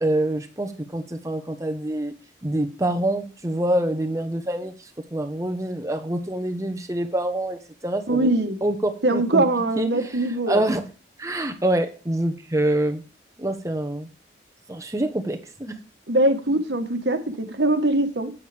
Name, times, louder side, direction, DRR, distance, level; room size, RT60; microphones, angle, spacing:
voice 1, 0.0-2.1 2.4-4.7 5.1-8.3 8.6-9.4 9.8-10.0 10.5-10.8 11.2-13.0 13.4-14.1 14.7-15.8, right 1 dB, 15° right, 6 dB, 1.1 m, -26 dB
voice 2, 8.1-8.6 9.0-10.6 16.1-18.3, right 2 dB, 70° right, 8 dB, 1.4 m, -22 dB
10.0 x 8.6 x 3.4 m, 0.34 s
head